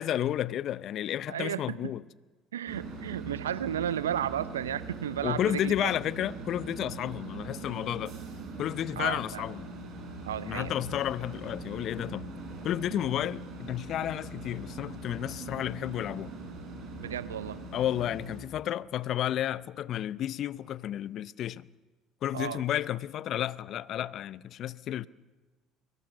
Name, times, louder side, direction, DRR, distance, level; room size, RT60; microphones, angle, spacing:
voice 1, 0.0-2.0 5.2-8.2 8.6-9.7 10.5-12.3 12.6-16.3 17.7-21.7 22.2-25.1, left 11 dB, 55° left, 0.6 m, -32 dB
voice 2, 1.3-1.8 2.5-5.9 9.0-9.4 10.2-10.7 17.0-17.6 22.3-22.6, right 10 dB, 85° right, 0.7 m, -33 dB
sound 1, 2.7-18.4, right 3 dB, 55° right, 6.6 m, -42 dB
23.5 x 19.0 x 6.5 m
hypercardioid pair, 60°, 0 cm